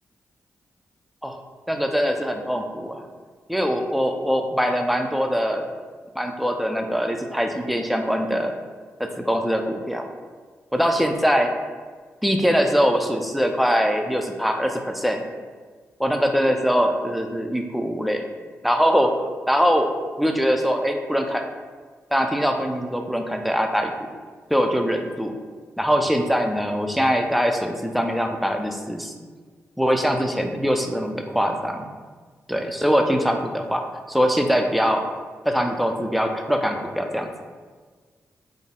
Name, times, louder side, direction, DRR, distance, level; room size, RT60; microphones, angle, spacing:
voice 1, 1.7-3.0 3.5-5.7 6.2-8.5 9.0-10.1 10.7-11.5 12.2-15.2 16.0-18.2 18.6-19.9 20.2-21.4 22.1-24.1 24.5-25.3 25.8-29.3 29.8-31.9 32.5-33.8 34.1-35.1 35.5-37.3, equal, ahead, 4 dB, 0.4 m, -22 dB
3.8 x 2.0 x 3.7 m, 1.5 s
supercardioid pair, 45°, 6 cm